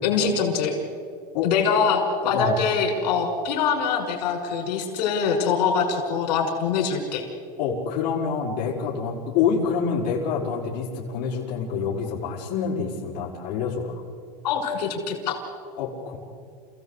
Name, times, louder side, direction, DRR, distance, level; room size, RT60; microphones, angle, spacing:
voice 1, 0.0-0.8 1.4-7.2 14.4-15.4, left 6 dB, 70° left, 2 dB, 5.6 m, -24 dB
voice 2, 7.6-14.0 15.8-16.2, left 6 dB, 50° left, -6 dB, 4.9 m, -27 dB
29.0 x 16.5 x 8.2 m, 2.2 s
supercardioid pair, 150°, 21 cm